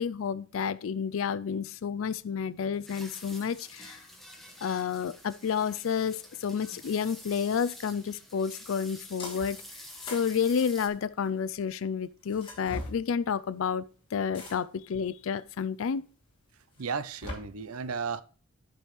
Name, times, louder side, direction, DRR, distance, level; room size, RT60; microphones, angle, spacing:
voice 1, 0.0-4.0 4.6-9.6 10.1-16.0, left 7 dB, 70° left, 0.4 m, -30 dB
sound 1, 2.8-10.9, left 1 dB, ahead, 1.3 m, -48 dB
sound 2, 9.2-9.6 9.9-11.4 12.3-13.0 14.3-14.9 15.6-15.7 16.8-17.3, left 2 dB, 25° left, 2.7 m, -41 dB
voice 2, 16.8-18.2, right 5 dB, 90° right, 0.6 m, -34 dB
13.0 x 6.1 x 3.2 m
head